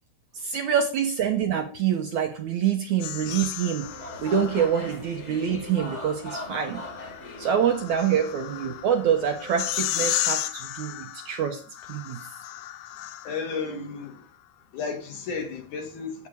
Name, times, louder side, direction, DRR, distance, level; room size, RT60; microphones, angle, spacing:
voice 1, 0.4-3.9 4.2-6.8 7.4-11.6 11.9-12.2, right 8 dB, 70° right, 1.9 m, -26 dB
sound 1, 3.0-5.0 6.4-13.6, left 14 dB, 75° left, 2.4 m, -34 dB
sound 2, 3.8-9.8, left 2 dB, 25° left, 1.8 m, -40 dB
voice 2, 13.2-14.4 14.7-16.3, left 5 dB, 60° left, 3.1 m, -33 dB
13.0 x 4.9 x 8.5 m
omnidirectional pair, 4.4 m